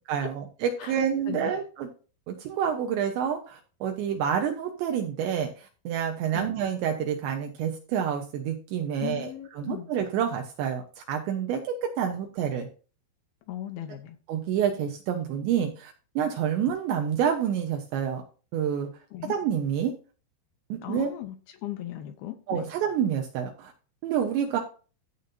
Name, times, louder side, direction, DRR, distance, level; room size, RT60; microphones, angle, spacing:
voice 1, 0.1-1.9 2.3-10.8 11.1-12.7 14.3-18.2 18.5-18.9 19.3-19.9 20.7-21.1 22.5-23.7 24.0-24.6, right 8 dB, 75° right, 3.1 m, -28 dB
voice 2, 9.0-9.9 13.5-14.2 19.1-19.3 20.8-21.4 21.6-22.7, left 13 dB, 85° left, 2.2 m, -37 dB
15.0 x 7.3 x 2.7 m
omnidirectional pair, 5.6 m